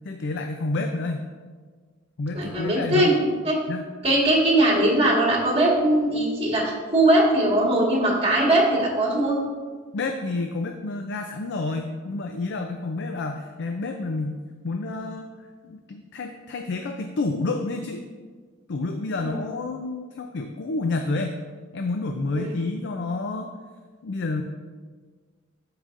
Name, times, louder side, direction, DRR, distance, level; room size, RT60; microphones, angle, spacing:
voice 1, 0.0-1.3 2.2-3.1 3.7-3.8 9.9-15.3 15.6-18.0 18.7-21.4 21.7-23.5 24.0-24.4, left 3 dB, 60° left, 5 dB, 0.4 m, -29 dB
voice 2, 2.3-3.5 4.0-9.4 19.2-19.4 22.3-22.5, right 1 dB, 30° right, -2 dB, 1.6 m, -20 dB
13.0 x 4.8 x 2.5 m, 1.5 s
head